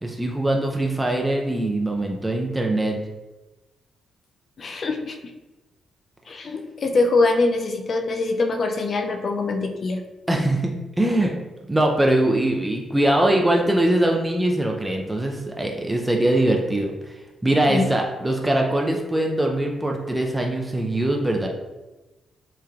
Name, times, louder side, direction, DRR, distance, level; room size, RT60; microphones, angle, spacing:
voice 1, 0.0-3.0 10.3-11.3 11.7-17.1 17.4-21.5, right 1 dB, 15° right, 1 dB, 0.4 m, -22 dB
voice 2, 4.6-5.2 6.3-10.0 17.7-17.9, left 3 dB, 50° left, 5 dB, 0.3 m, -23 dB
3.1 x 2.3 x 2.4 m, 1.1 s
hypercardioid pair, 40°, 0 cm